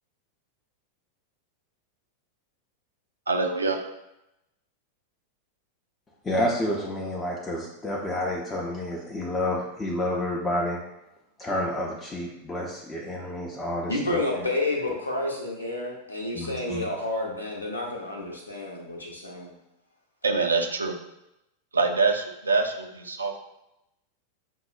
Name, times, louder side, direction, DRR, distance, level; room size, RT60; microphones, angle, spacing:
voice 1, 3.3-3.9 20.2-20.9 21.7-23.4, right 4 dB, 75° right, 4 dB, 0.4 m, -25 dB
voice 2, 6.2-10.8 11.4-14.2 16.3-16.9, left 1 dB, 15° left, -2 dB, 0.4 m, -29 dB
voice 3, 13.9-19.6, left 2 dB, 80° left, -1 dB, 0.6 m, -30 dB
5.3 x 2.0 x 2.4 m, 0.88 s
figure-of-eight pair, 90°, 0 cm